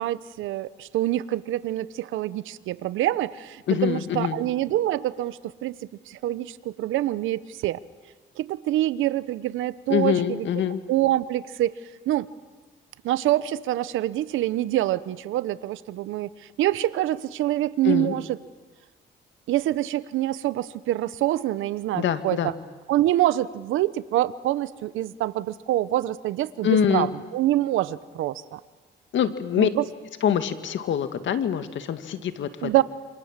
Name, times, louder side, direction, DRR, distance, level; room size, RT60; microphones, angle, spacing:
voice 1, 0.0-5.8 6.1-7.8 8.4-10.5 10.9-11.7 12.1-12.3 13.0-16.3 16.6-18.4 19.5-22.5 22.9-28.6 29.6-29.8 32.6-32.8, right 14 dB, 90° right, 16 dB, 0.9 m, -25 dB
voice 2, 3.7-4.4 9.9-10.8 17.8-18.1 21.9-22.5 26.6-27.1 29.1-29.7 30.2-32.7, left 9 dB, 70° left, 10 dB, 2.0 m, -24 dB
28.0 x 26.5 x 7.5 m, 1.3 s
cardioid pair, 90°, 20 cm